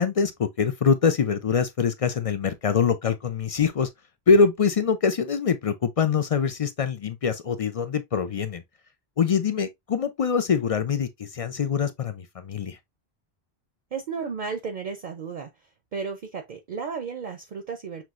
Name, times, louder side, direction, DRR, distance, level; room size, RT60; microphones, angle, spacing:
voice 1, 0.0-3.9 4.3-8.6 9.2-12.8, left 6 dB, 55° left, 0.4 m, -24 dB
voice 2, 13.9-18.0, right 5 dB, 50° right, 0.7 m, -34 dB
5.9 x 3.1 x 2.4 m
omnidirectional pair, 1.1 m